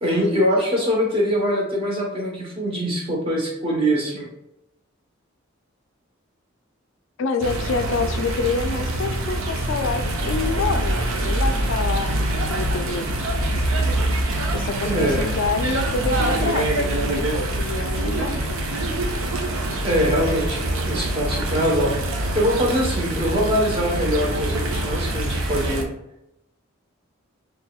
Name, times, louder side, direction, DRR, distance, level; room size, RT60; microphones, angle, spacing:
voice 1, 0.0-4.3 14.8-15.2 19.8-21.9 22.3-25.9, equal, 25° right, -2 dB, 1.0 m, -23 dB
voice 2, 7.2-12.1 12.4-13.1 14.5-18.7, left 4 dB, 65° left, 8 dB, 0.3 m, -27 dB
sound 1, 7.4-25.8, right 1 dB, 85° right, 0.6 m, -24 dB
4.1 x 3.2 x 2.3 m, 0.82 s
head